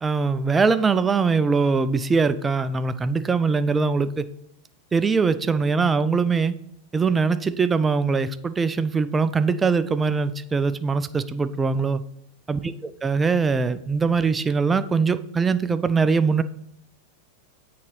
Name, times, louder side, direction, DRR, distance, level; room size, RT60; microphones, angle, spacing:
voice 1, 0.0-4.2 4.9-6.5 6.9-12.0 12.5-16.4, right 4 dB, 15° right, 13 dB, 0.3 m, -22 dB
8.2 x 3.8 x 3.1 m, 0.72 s
figure-of-eight pair, 90°, 0 cm